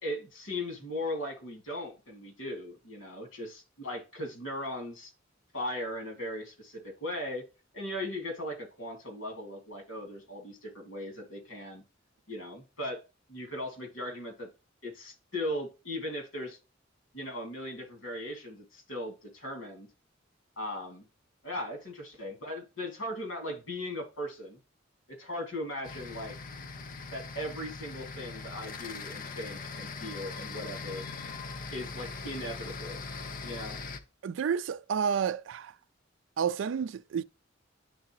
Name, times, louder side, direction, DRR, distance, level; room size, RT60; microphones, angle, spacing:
voice 1, 0.0-5.1 5.5-7.4 7.7-11.8 12.3-13.0 13.3-14.5 14.8-16.6 17.1-19.9 20.6-21.1 21.4-24.6 25.1-26.4 27.1-31.0 31.7-33.0 33.4-33.8, left 1 dB, 85° left, 2.5 m, -38 dB
sound 1, 25.8-34.0, left 4 dB, 45° left, 0.7 m, -41 dB
voice 2, 34.2-35.7 36.4-37.2, right 7 dB, 70° right, 0.3 m, -30 dB
11.0 x 3.7 x 3.0 m
head